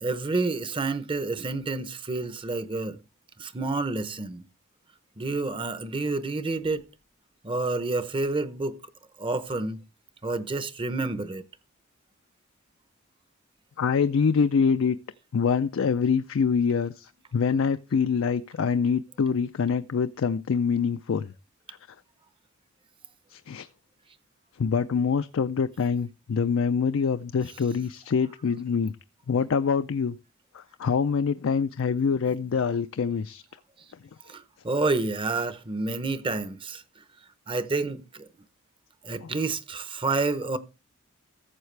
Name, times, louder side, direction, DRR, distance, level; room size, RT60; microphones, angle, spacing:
voice 1, 0.0-3.0 3.4-4.4 5.2-6.9 7.4-8.8 9.2-9.8 10.2-11.4 34.3-37.0 37.5-38.3 39.0-40.6, right 3 dB, 25° right, 0.7 m, -29 dB
voice 2, 13.8-15.0 15.3-21.3 23.3-23.7 24.6-28.9 29.3-30.2 30.5-33.4 39.2-39.3, left 6 dB, 65° left, 0.4 m, -25 dB
14.0 x 7.3 x 3.3 m
head